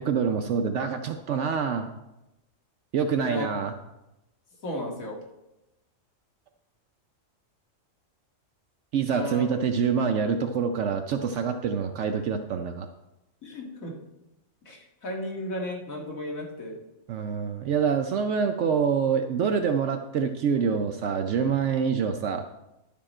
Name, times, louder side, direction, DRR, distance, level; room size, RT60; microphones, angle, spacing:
voice 1, 0.0-1.9 2.9-3.7 8.9-12.9 17.1-22.5, right 6 dB, 70° right, 6 dB, 0.9 m, -26 dB
voice 2, 4.6-5.2 9.1-9.4 13.4-13.9 14.7-16.8, left 1 dB, 90° left, 0 dB, 2.2 m, -34 dB
11.0 x 7.3 x 4.3 m, 0.94 s
omnidirectional pair, 1.4 m